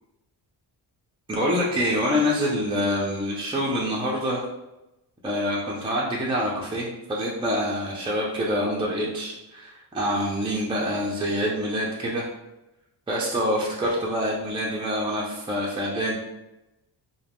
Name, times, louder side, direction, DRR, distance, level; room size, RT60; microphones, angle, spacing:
voice 1, 1.3-4.4 5.2-12.3 13.1-16.2, equal, 10° right, -4 dB, 0.5 m, -26 dB
2.4 x 2.2 x 3.4 m, 0.95 s
cardioid pair, 85°, 44 cm